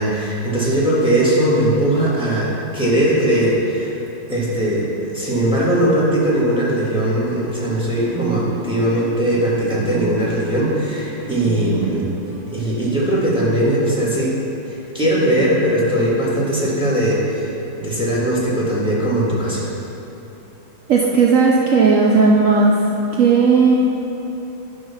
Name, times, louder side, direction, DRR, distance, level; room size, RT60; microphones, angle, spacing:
voice 1, 0.0-3.9 4.3-12.1 12.5-14.3 14.7-17.5 17.8-19.6, right 1 dB, 5° right, -6 dB, 1.5 m, -19 dB
sound 1, 5.5-13.2, right 4 dB, 30° right, 2.3 m, -33 dB
voice 2, 20.9-22.7 23.2-23.8, right 4 dB, 70° right, -1 dB, 0.8 m, -14 dB
10.5 x 4.0 x 5.6 m, 3.0 s
omnidirectional pair, 1.9 m